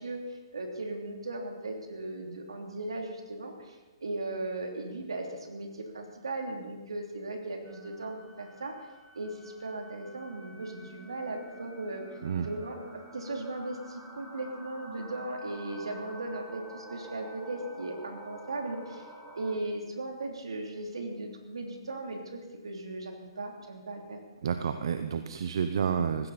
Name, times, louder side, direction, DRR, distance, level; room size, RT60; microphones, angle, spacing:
voice 1, 0.0-8.7 9.1-12.0 12.4-19.1 19.4-24.2, right 2 dB, 85° right, 2 dB, 3.1 m, -37 dB
sound 1, 7.6-19.6, equal, 15° right, 4.8 m, -49 dB
voice 2, 24.4-26.3, right 7 dB, 65° right, 9 dB, 0.9 m, -30 dB
19.5 x 15.5 x 4.3 m, 1.2 s
hypercardioid pair, 135°, 3 cm